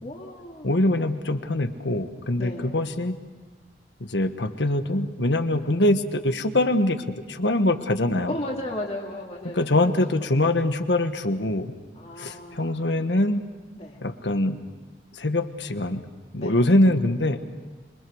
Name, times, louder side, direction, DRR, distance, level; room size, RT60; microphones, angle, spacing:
voice 1, 0.0-0.9 2.4-2.7 8.3-9.9 10.4-10.5 11.9-13.1 13.8-14.0 16.4-16.6, left 1 dB, 40° left, -2 dB, 2.4 m, -35 dB
voice 2, 0.6-3.1 4.0-8.3 9.5-11.7 12.2-13.4 14.0-14.6 15.1-16.0 16.3-17.4, left 1 dB, 80° left, 8 dB, 1.5 m, -23 dB
26.5 x 23.5 x 6.4 m, 1.4 s
head